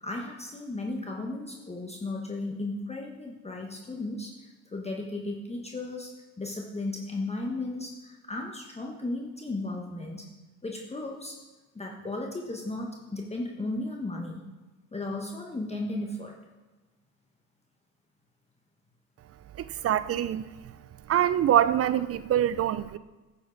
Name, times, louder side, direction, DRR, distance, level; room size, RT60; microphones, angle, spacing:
voice 1, 0.0-6.1 6.4-10.2 10.6-11.4 11.7-14.4 14.9-16.4, left 2 dB, 15° left, 0 dB, 1.3 m, -35 dB
voice 2, 19.8-20.4 21.1-23.0, right 11 dB, 40° right, 15 dB, 0.4 m, -24 dB
10.5 x 7.2 x 4.0 m, 1.2 s
supercardioid pair, 75°, 36 cm